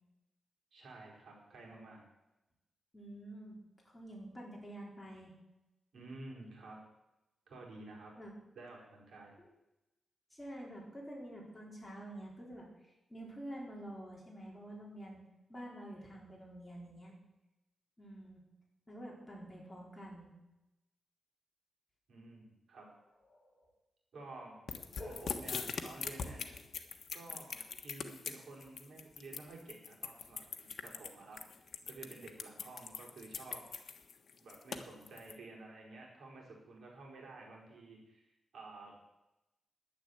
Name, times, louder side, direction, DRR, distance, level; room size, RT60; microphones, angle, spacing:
voice 1, 0.7-2.0 5.9-6.8 7.5-8.1 8.6-9.3 22.1-22.9 24.1-24.6 25.0-26.5 27.1-33.7 34.4-38.3 38.5-38.9, right 2 dB, 70° right, -2 dB, 5.2 m, -51 dB
voice 2, 2.9-3.6 3.9-5.3 8.2-8.3 9.4-9.5 10.3-15.2 15.5-17.1 18.0-18.4 18.9-20.3 23.3-23.7 25.0-25.3, right 1 dB, 10° left, -3 dB, 4.4 m, -48 dB
sound 1, 24.7-35.3, left 6 dB, 65° left, 1.3 m, -42 dB
11.0 x 9.9 x 8.2 m, 0.95 s
wide cardioid pair, 115°, 0 cm